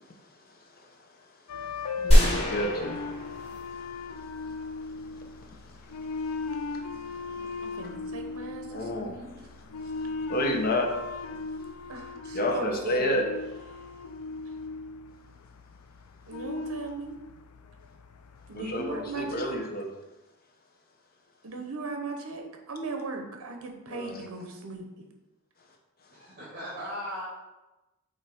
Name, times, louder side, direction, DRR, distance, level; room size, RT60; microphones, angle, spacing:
sound 1, 1.5-19.6, left 4 dB, 85° left, 0.4 m, -38 dB
voice 1, 1.9-3.1 5.1-5.2 6.7-6.8 7.8-7.9 8.7-9.5 10.3-11.0 12.3-13.3 18.5-19.9 23.9-24.3, left 1 dB, 45° left, 1 dB, 0.9 m, -30 dB
sound 2, 2.1-4.0 4.4-4.5, equal, 30° left, 1.4 m, -23 dB
voice 2, 7.6-9.3 11.3-11.4 11.9-13.2 16.3-17.1 18.5-19.6 21.4-25.1, right 2 dB, 65° right, 3 dB, 0.9 m, -38 dB
voice 3, 13.7-14.0 26.1-27.2, equal, 40° right, -9 dB, 2.0 m, -39 dB
7.9 x 2.8 x 4.3 m, 1.0 s
head